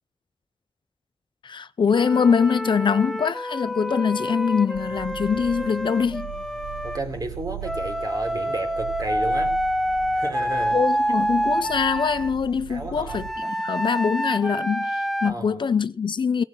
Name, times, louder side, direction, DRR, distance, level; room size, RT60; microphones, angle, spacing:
voice 1, 1.4-6.3 10.7-16.4, left 6 dB, 60° left, 0.5 m, -23 dB
Wind instrument woodwind instrument, 1.9-7.0 7.6-12.3 13.1-15.3, equal, ahead, 0.8 m, -27 dB
sound 1, 4.7-13.3, right 9 dB, 85° right, 1.4 m, -39 dB
voice 2, 6.8-9.5 10.1-10.8 12.7-13.2 15.2-15.6, right 2 dB, 40° right, 3.4 m, -32 dB
18.0 x 7.3 x 6.0 m
wide cardioid pair, 145°, 10 cm